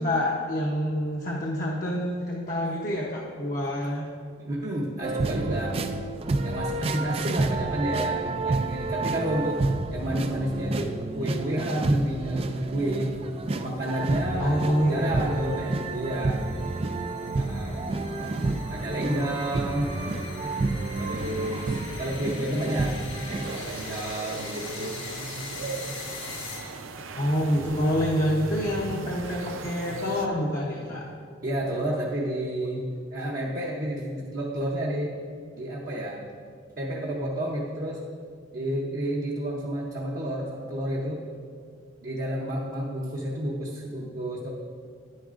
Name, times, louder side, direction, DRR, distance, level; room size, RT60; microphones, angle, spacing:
voice 1, 0.0-4.0 14.4-15.3 27.2-31.0, equal, 45° left, -4 dB, 0.8 m, -27 dB
voice 2, 4.4-5.8 6.4-9.6 9.9-13.1 13.5-16.4 17.4-17.8 18.7-20.0 21.0-25.0 27.4-27.5 31.4-32.8 33.1-35.2 35.6-36.2 36.8-38.0 38.5-41.2 42.0-44.5, right 1 dB, 45° right, -4 dB, 0.8 m, -30 dB
sound 1, 5.0-23.6, right 2 dB, 30° right, 0.3 m, -29 dB
sound 2, 12.2-27.0, left 3 dB, 75° left, 1.4 m, -43 dB
sound 3, 23.4-30.3, right 3 dB, 85° right, 0.6 m, -37 dB
10.5 x 9.5 x 2.5 m, 2.2 s
head